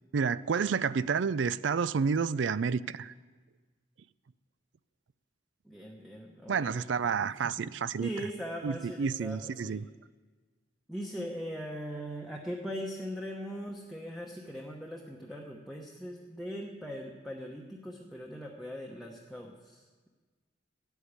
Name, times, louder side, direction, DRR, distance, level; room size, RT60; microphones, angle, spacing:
voice 1, 0.1-3.1 6.5-8.1 8.6-9.8, right 6 dB, 75° right, 17 dB, 0.4 m, -30 dB
voice 2, 5.6-7.1 7.4-7.7 8.0-9.8 10.9-20.1, equal, ahead, -1 dB, 1.0 m, -40 dB
13.5 x 8.3 x 9.7 m, 1.4 s
head